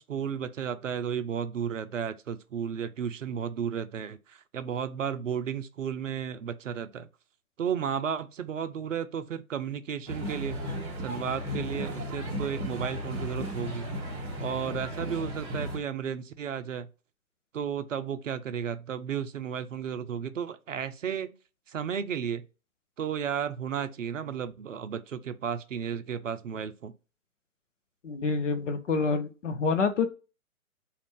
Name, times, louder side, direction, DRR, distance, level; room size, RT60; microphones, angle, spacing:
voice 1, 0.0-7.1 7.6-13.9 14.4-16.9 17.5-21.3 21.7-22.4 23.0-26.9, right 7 dB, 60° right, 0.5 m, -33 dB
sound 1, 10.1-15.8, equal, 20° right, 0.9 m, -35 dB
voice 2, 28.0-30.1, left 4 dB, 55° left, 0.7 m, -27 dB
2.5 x 2.4 x 3.4 m
figure-of-eight pair, 140°, 43 cm